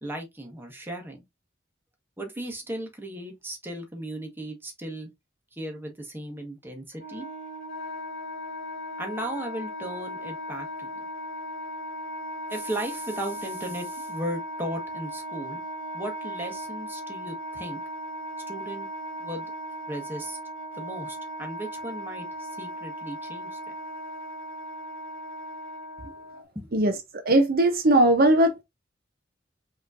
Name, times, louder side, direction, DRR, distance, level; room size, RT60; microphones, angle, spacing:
voice 1, 0.0-1.2 2.2-5.1 5.5-7.3 9.0-10.9 12.5-15.6 15.9-17.8 18.5-18.9 19.2-19.5 19.9-20.4 20.7-23.7 26.5-26.8, right 1 dB, 10° right, 1.3 m, -36 dB
Wind instrument woodwind instrument, 6.9-26.4, equal, 50° left, 2.1 m, -37 dB
voice 2, 27.2-28.6, right 1 dB, 50° right, 0.7 m, -19 dB
5.0 x 3.1 x 2.5 m
head